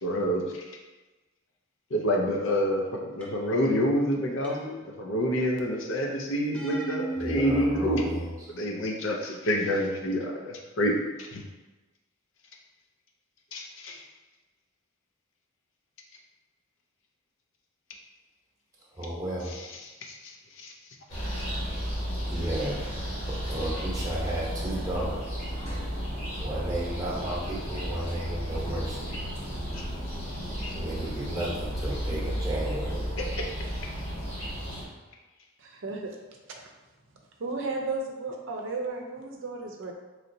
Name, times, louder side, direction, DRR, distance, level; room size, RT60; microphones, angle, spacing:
voice 1, 0.0-0.6 1.9-8.1 8.5-11.4 13.5-14.0 19.4-20.7 29.7-29.8 33.2-33.5, equal, 65° left, 1 dB, 0.6 m, -28 dB
sound 1, 3.2-3.7 4.4-5.3 6.5-7.3, right 2 dB, 5° left, 0.5 m, -36 dB
voice 2, 7.2-8.2 18.9-19.5 22.3-22.8 23.2-25.2 26.4-29.1 30.7-33.1, right 1 dB, 15° right, -6 dB, 0.9 m, -33 dB
sound 2, 21.1-34.8, equal, 35° left, 1.0 m, -33 dB
voice 3, 35.6-36.2 37.4-39.9, right 3 dB, 65° right, 1 dB, 0.6 m, -34 dB
4.0 x 3.1 x 2.6 m, 1.2 s
head